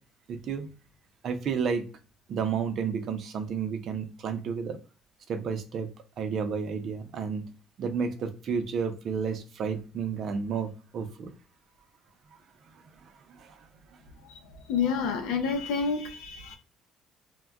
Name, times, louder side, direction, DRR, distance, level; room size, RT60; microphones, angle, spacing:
voice 1, 0.3-0.7 1.2-1.8 2.3-4.8 5.3-5.9 6.2-7.4 7.8-11.3 13.0-13.7, right 6 dB, 60° right, 0.5 m, -31 dB
voice 2, 14.7-16.6, left 5 dB, 85° left, 0.5 m, -28 dB
2.2 x 2.1 x 3.5 m
cardioid pair, 95°, 0 cm